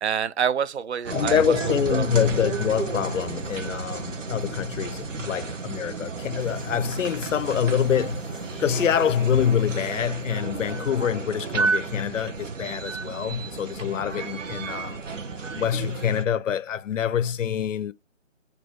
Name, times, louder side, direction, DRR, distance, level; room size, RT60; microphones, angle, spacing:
voice 1, 0.0-2.1, right 7 dB, 65° right, 0.5 m, -27 dB
sound 1, 1.0-16.2, right 4 dB, 85° right, 1.0 m, -32 dB
voice 2, 1.1-8.3 8.6-15.0 15.5-17.9, left 8 dB, 85° left, 0.5 m, -25 dB
sound 2, 6.4-9.8, right 2 dB, 5° right, 0.8 m, -39 dB
4.5 x 2.6 x 4.5 m
figure-of-eight pair, 165°, 37 cm